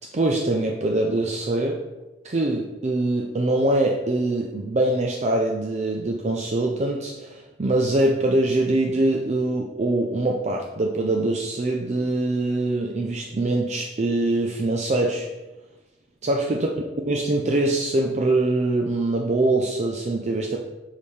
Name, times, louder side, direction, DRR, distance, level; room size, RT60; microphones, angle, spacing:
voice 1, 0.1-1.8 2.2-15.3 16.2-16.7 17.1-20.6, right 2 dB, 35° right, 0 dB, 0.5 m, -23 dB
5.3 x 4.9 x 4.2 m, 1.1 s
head